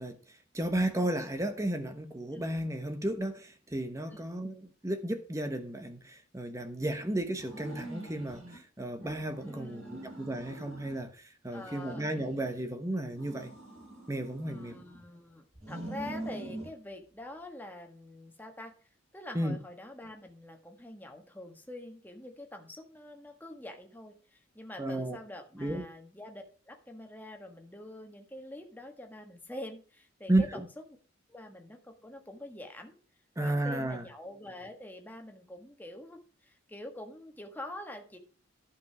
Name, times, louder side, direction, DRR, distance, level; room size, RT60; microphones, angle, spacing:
voice 1, 0.0-13.5 14.1-14.8 19.3-19.6 24.8-25.2 25.6-25.8 30.3-30.6 33.4-34.0, right 1 dB, 15° right, 1.1 m, -33 dB
sound 1, 7.4-8.6 9.0-11.1 11.5-12.7 13.1-15.0 15.5-16.7, right 1 dB, 35° right, 6.6 m, -44 dB
voice 2, 9.5-10.2 11.5-12.1 14.5-18.7 19.1-30.7 31.3-33.0 33.4-38.2, left 1 dB, 10° left, 1.6 m, -45 dB
11.5 x 5.4 x 6.0 m
head